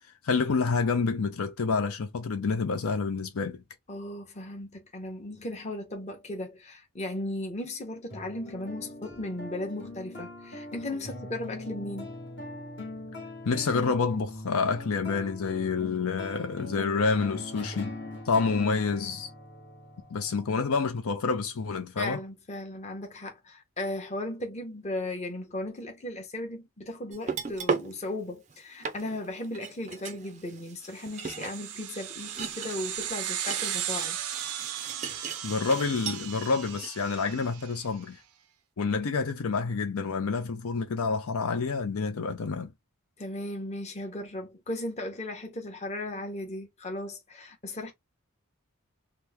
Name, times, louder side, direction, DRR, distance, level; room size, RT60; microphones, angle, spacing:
voice 1, 0.2-3.6 13.5-17.9 18.3-19.3 20.1-22.2 35.4-38.2 38.8-42.7, left 4 dB, 75° left, 0.5 m, -28 dB
voice 2, 3.9-12.1 22.0-34.2 43.2-47.9, left 1 dB, 30° left, 0.8 m, -36 dB
sound 1, 8.1-20.8, left 2 dB, 50° left, 1.1 m, -41 dB
sound 2, 27.1-27.9 28.5-28.6 28.8-36.5 36.8-36.9, right 5 dB, 30° right, 0.4 m, -37 dB
sound 3, 31.0-37.8, right 10 dB, 85° right, 0.5 m, -36 dB
3.0 x 2.1 x 3.4 m
head